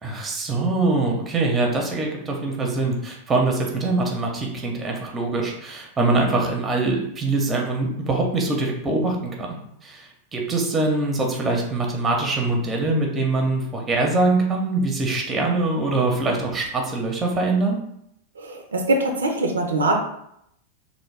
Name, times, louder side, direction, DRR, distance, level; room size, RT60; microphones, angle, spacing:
voice 1, 0.0-17.8, right 2 dB, 20° right, 1 dB, 0.7 m, -23 dB
voice 2, 18.4-20.0, right 2 dB, 70° right, 2 dB, 0.5 m, -22 dB
3.2 x 2.1 x 3.3 m, 0.75 s
figure-of-eight pair, 90°, 0 cm